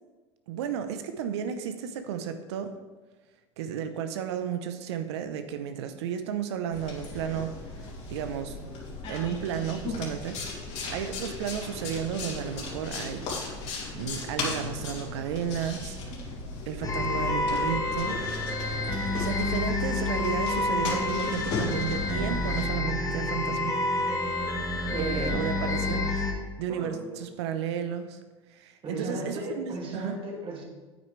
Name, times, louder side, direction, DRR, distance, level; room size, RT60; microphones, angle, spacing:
voice 1, 0.5-2.7 3.6-7.5 8.1-8.6 9.1-10.4 10.9-13.2 13.9-16.0 16.7-18.2 19.2-23.8 25.0-26.2 26.6-28.2 28.5-30.2, right 8 dB, 75° right, 9 dB, 0.8 m, -33 dB
sound 1, 6.7-22.6, left 3 dB, 50° left, 3.1 m, -37 dB
sound 2, 16.8-26.3, left 2 dB, 25° left, 1.6 m, -29 dB
voice 2, 24.9-26.0 26.7-27.4 28.8-30.6, right 2 dB, 40° right, -1 dB, 2.5 m, -36 dB
9.4 x 8.8 x 3.3 m, 1.3 s
hypercardioid pair, 75°, 14 cm